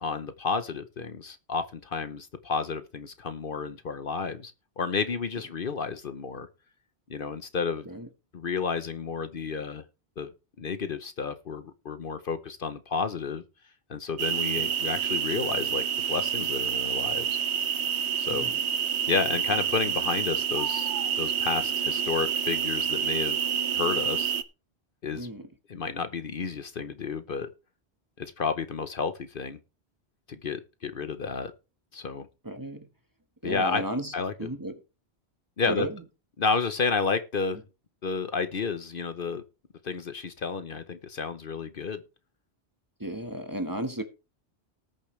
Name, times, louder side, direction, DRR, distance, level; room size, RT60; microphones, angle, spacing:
voice 1, 0.0-6.5 7.1-7.8 8.3-9.8 10.2-10.3 10.6-13.4 13.9-17.4 18.2-18.5 19.1-20.9 21.2-23.4 23.7-24.3 25.0-25.3 25.7-27.5 28.2-29.6 30.3-31.5 31.9-32.3 33.4-33.8 34.1-34.3 35.6-35.9 36.4-37.6 38.0-39.4 39.8-42.0, left 5 dB, 55° left, 1.0 m, -31 dB
sound 1, 14.2-24.4, right 8 dB, 85° right, 1.1 m, -28 dB
voice 2, 25.1-25.5 32.4-32.9 33.4-34.1 34.4-34.8 35.7-36.0 43.0-44.0, right 1 dB, 20° right, 1.3 m, -33 dB
19.0 x 6.9 x 3.2 m
omnidirectional pair, 1.1 m